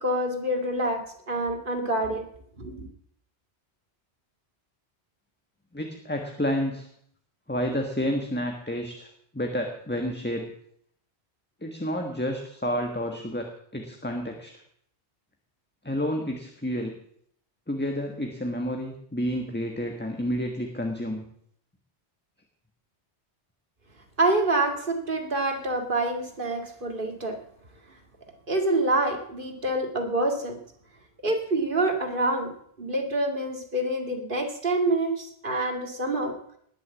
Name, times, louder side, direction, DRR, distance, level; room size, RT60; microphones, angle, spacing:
voice 1, 0.0-2.2 2.6-2.9 24.2-27.4 28.5-30.6 31.2-32.5 32.8-36.4, right 2 dB, 50° right, 4 dB, 2.3 m, -26 dB
voice 2, 5.7-6.9 7.5-9.1 9.3-10.5 11.6-13.5 13.7-14.5 15.8-16.9 17.7-21.2, equal, 10° left, 3 dB, 1.4 m, -30 dB
19.5 x 6.6 x 8.4 m, 0.68 s
omnidirectional pair, 1.2 m